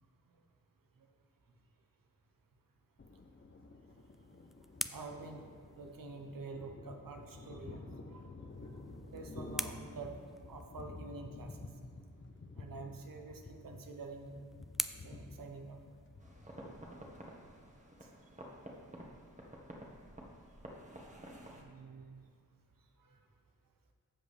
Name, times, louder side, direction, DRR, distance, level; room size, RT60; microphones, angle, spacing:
Thunder, 3.0-17.8, left 2 dB, 35° left, 0.8 m, -51 dB
sound 1, 3.9-6.4 8.5-10.9 13.1-16.3, equal, ahead, 0.3 m, -46 dB
voice 1, 4.9-8.8 9.1-10.2 10.5-11.7 12.5-14.3 15.0-15.8 18.0-18.1 21.5-22.2 23.0-23.2, right 3 dB, 80° right, 4 dB, 1.0 m, -48 dB
sound 2, 16.2-21.6, right 1 dB, 20° right, 1.5 m, -51 dB
15.0 x 5.1 x 3.4 m, 2.3 s
cardioid pair, 50°, 33 cm